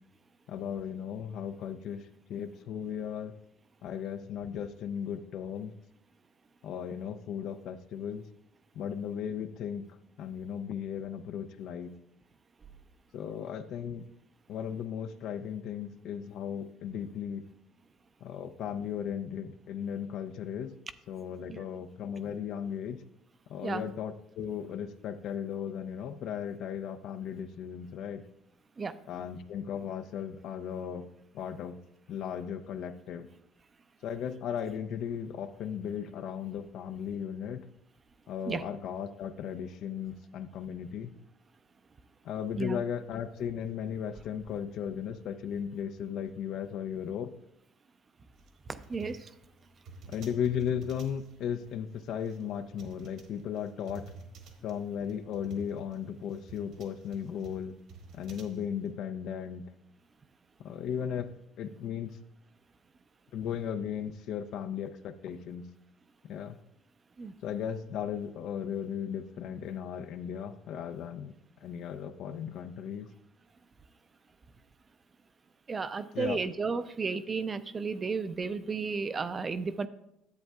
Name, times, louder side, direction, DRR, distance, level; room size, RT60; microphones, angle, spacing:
voice 1, 0.5-2.0 2.3-3.3 3.8-5.7 6.6-8.3 8.7-9.8 10.2-11.9 13.1-14.1 14.5-17.4 18.2-20.7 21.1-23.0 23.5-28.2 29.0-31.1 31.3-31.8 32.1-33.3 34.0-37.7 38.3-41.2 42.2-47.3 50.1-54.0 54.6-57.7 58.1-59.6 60.6-62.2 63.3-65.6 66.2-66.6 67.4-71.3 71.6-73.1 76.1-76.4, left 8 dB, 65° left, 11 dB, 0.5 m, -36 dB
sound 1, 48.3-58.9, right 3 dB, 65° right, 1.4 m, -51 dB
voice 2, 48.7-49.3 67.2-67.3 75.7-79.9, right 4 dB, 30° right, 12 dB, 0.4 m, -33 dB
10.5 x 7.8 x 2.3 m, 0.83 s
supercardioid pair, 95°, 0 cm